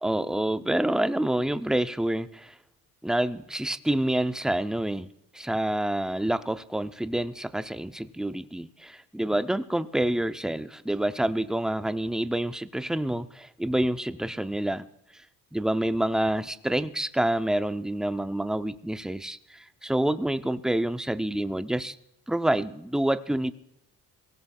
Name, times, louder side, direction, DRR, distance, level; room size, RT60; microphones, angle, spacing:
voice 1, 0.0-2.6 3.0-5.1 5.3-14.9 15.5-22.0 22.3-23.5, right 1 dB, ahead, 12 dB, 0.5 m, -27 dB
23.5 x 17.0 x 2.3 m, 0.81 s
cardioid pair, 75°, 38 cm